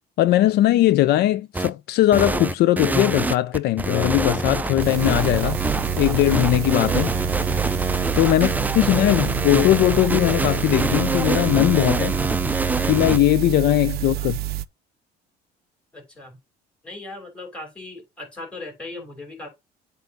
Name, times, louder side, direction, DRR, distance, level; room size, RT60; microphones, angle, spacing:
voice 1, 0.2-5.6 5.9-7.1 8.1-12.1 12.9-14.4, left 15 dB, 75° left, 0.5 m, -19 dB
sound 1, 1.5-1.7 2.1-13.2, right 2 dB, 10° right, 0.4 m, -25 dB
sound 2, 4.8-14.6, right 14 dB, 70° right, 0.5 m, -28 dB
voice 2, 7.0-7.5 8.3-8.9 9.2-9.5 14.1-14.3 15.9-16.4 16.8-19.5, left 2 dB, 5° left, 3.1 m, -39 dB
8.0 x 2.7 x 5.3 m
cardioid pair, 110°, 17 cm